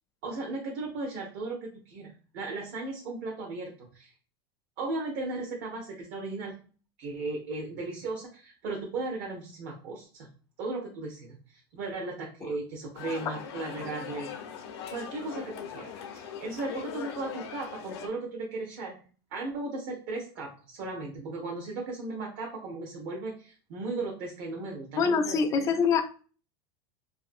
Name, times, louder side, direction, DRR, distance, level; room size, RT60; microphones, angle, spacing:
voice 1, 0.2-4.1 4.8-6.6 7.0-10.3 10.6-14.3 14.9-19.0 19.3-25.7, right 3 dB, 55° right, -1 dB, 0.7 m, -36 dB
sound 1, 12.9-18.1, left 8 dB, 75° left, 0.6 m, -40 dB
voice 2, 25.0-26.2, left 5 dB, 25° left, 7 dB, 0.3 m, -25 dB
2.6 x 2.5 x 2.5 m, 0.38 s
supercardioid pair, 140°, 14 cm